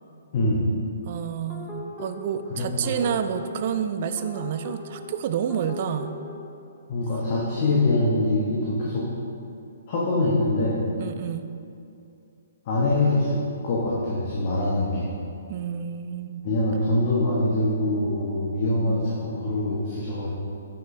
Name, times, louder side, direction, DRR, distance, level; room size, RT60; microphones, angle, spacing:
voice 1, 0.3-0.7 2.5-2.9 6.9-9.0 9.9-10.8 12.7-15.1 16.4-20.3, left 2 dB, 40° left, -6 dB, 1.1 m, -24 dB
voice 2, 1.0-6.1 11.0-11.5 15.5-16.4 18.9-19.1, right 8 dB, 45° right, 9 dB, 0.3 m, -29 dB
sound 1, 1.5-6.3, left 3 dB, 10° left, 0.8 m, -40 dB
7.1 x 6.3 x 2.7 m, 2.6 s
figure-of-eight pair, 125°, 0 cm